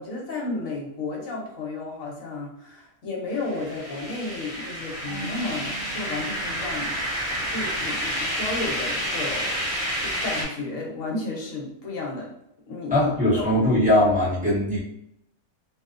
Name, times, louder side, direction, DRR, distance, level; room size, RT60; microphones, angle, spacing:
voice 1, 0.0-6.9 7.5-9.5 10.0-12.3 12.7-13.7, left 3 dB, 65° left, -2 dB, 1.1 m, -32 dB
sound 1, 3.3-10.4, equal, 10° left, 1.1 m, -29 dB
Marimba xylophone / Wood, 5.1-7.8, right 3 dB, 80° right, 1.1 m, -42 dB
voice 2, 12.9-14.8, left 1 dB, 5° right, -9 dB, 0.7 m, -20 dB
2.6 x 2.1 x 2.4 m, 0.79 s
omnidirectional pair, 1.5 m